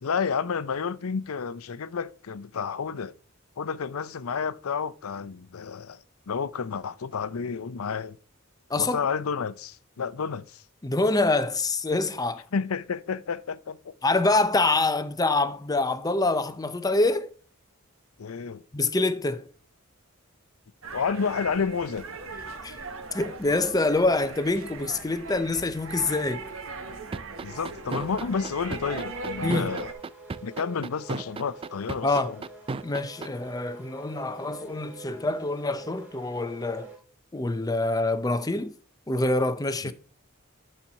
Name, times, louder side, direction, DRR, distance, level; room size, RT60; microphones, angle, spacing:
voice 1, 0.0-3.1 3.6-8.2 8.8-10.6 12.5-13.9 18.2-18.6 20.9-22.1 27.4-29.9 30.4-32.4 39.8-39.9, left 5 dB, 90° left, 0.6 m, -30 dB
voice 2, 8.7-9.0 10.8-12.5 14.0-17.3 18.7-19.5 22.6-26.5 29.4-29.7 32.0-32.3 32.8-36.9 37.3-38.7 39.1-39.9, left 2 dB, 20° left, 0.6 m, -26 dB
sound 1, 20.8-29.9, right 3 dB, 70° right, 1.4 m, -39 dB
sound 2, 27.1-33.3, right 4 dB, 25° right, 0.3 m, -33 dB
sound 3, 27.9-37.0, right 3 dB, 10° right, 4.2 m, -47 dB
12.0 x 4.4 x 5.4 m
head